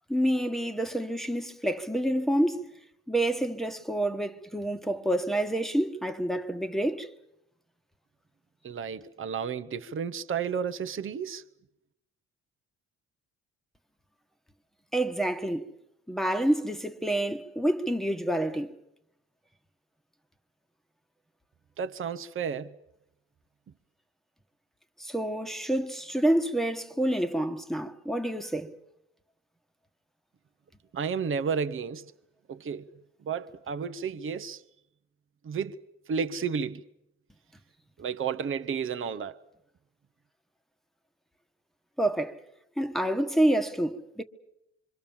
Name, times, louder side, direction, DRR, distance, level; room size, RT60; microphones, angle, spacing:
voice 1, 0.1-2.7 3.1-7.1 14.9-15.7 16.1-18.8 25.0-28.7 42.0-42.4 42.8-44.2, right 1 dB, ahead, 1.4 m, -28 dB
voice 2, 8.6-11.4 21.8-22.8 30.9-32.1 32.5-32.8 33.2-34.6 35.4-35.8 36.1-36.8 38.0-39.4, right 6 dB, 45° right, 1.0 m, -32 dB
26.0 x 24.5 x 7.2 m
cardioid pair, 90°, 30 cm